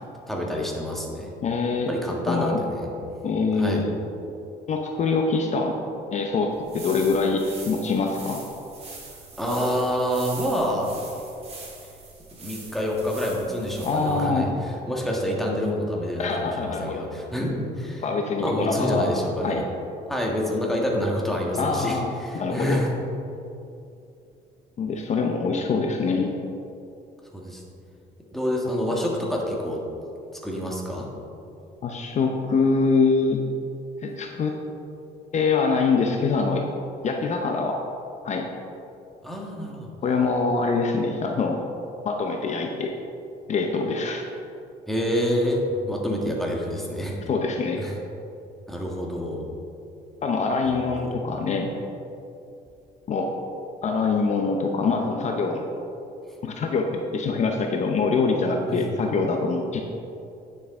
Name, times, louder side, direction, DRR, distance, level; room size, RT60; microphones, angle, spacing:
voice 1, 0.3-1.3 1.9-2.9 3.6-3.8 9.4-11.0 12.4-14.5 14.9-18.0 18.3-19.6 20.1-22.9 27.3-27.6 28.3-29.8 30.4-31.1 39.2-39.9 44.9-47.2 47.8-47.9 48.7-49.4 50.7-51.1 58.7-58.8, equal, ahead, -2 dB, 1.5 m, -27 dB
voice 2, 1.4-1.9 2.3-2.6 3.2-3.9 4.7-5.7 6.1-8.4 13.8-14.5 16.2-17.0 18.0-19.1 19.4-19.6 21.6-22.8 24.8-26.3 31.8-33.4 34.0-34.5 35.3-36.6 37.0-37.8 38.2-38.4 40.0-41.6 42.0-43.0 43.5-44.2 47.3-47.8 50.2-51.7 53.1-53.3 53.8-55.7 56.4-56.9 57.1-59.8, left 4 dB, 45° left, 2 dB, 0.7 m, -24 dB
sound 1, 6.5-14.3, right 4 dB, 35° right, 2.0 m, -42 dB
9.6 x 6.5 x 3.7 m, 2.7 s
cardioid pair, 110°, 17 cm